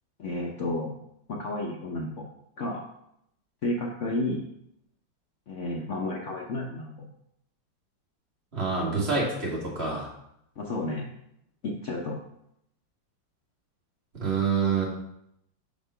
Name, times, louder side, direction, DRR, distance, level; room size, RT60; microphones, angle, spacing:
voice 1, 0.2-0.9 1.3-2.2 2.6-2.8 3.6-4.4 5.5-7.1 10.6-11.1 11.6-12.1, left 2 dB, 60° left, -1 dB, 0.8 m, -31 dB
voice 2, 8.5-10.1 14.1-14.9, right 4 dB, 35° right, -3 dB, 2.0 m, -27 dB
5.2 x 4.9 x 5.6 m, 0.76 s
omnidirectional pair, 2.0 m